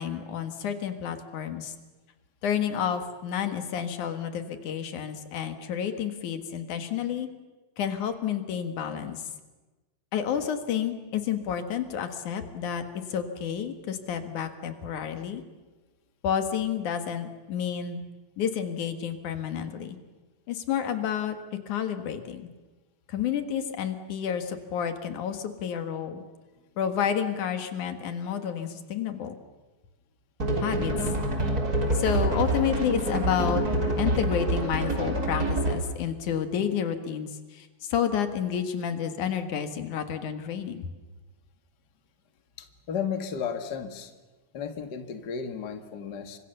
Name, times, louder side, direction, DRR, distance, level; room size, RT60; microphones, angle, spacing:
voice 1, 0.0-1.7 2.4-7.3 7.8-9.2 10.1-15.4 16.2-18.0 18.4-20.0 20.5-21.4 21.7-22.5 23.1-26.2 26.8-29.4 30.6-30.9 31.9-33.6 34.0-40.9, left 8 dB, 85° left, 8 dB, 3.2 m, -30 dB
sound 1, 30.4-35.9, right 1 dB, 30° right, 4.0 m, -26 dB
voice 2, 42.6-44.1 44.5-46.4, left 7 dB, 40° left, 7 dB, 2.0 m, -34 dB
30.0 x 25.0 x 6.9 m, 1.2 s
omnidirectional pair, 3.4 m